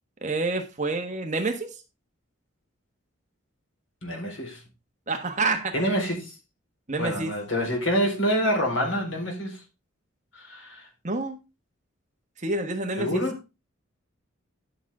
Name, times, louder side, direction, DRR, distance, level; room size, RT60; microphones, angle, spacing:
voice 1, 0.2-1.7 5.1-5.9 6.9-7.3 11.0-11.4 12.4-13.2, right 3 dB, 35° right, 1.5 m, -28 dB
voice 2, 4.0-4.6 5.7-6.4 7.0-9.6 10.3-10.9 13.0-13.3, equal, 70° left, 4.1 m, -27 dB
11.5 x 6.4 x 3.7 m
head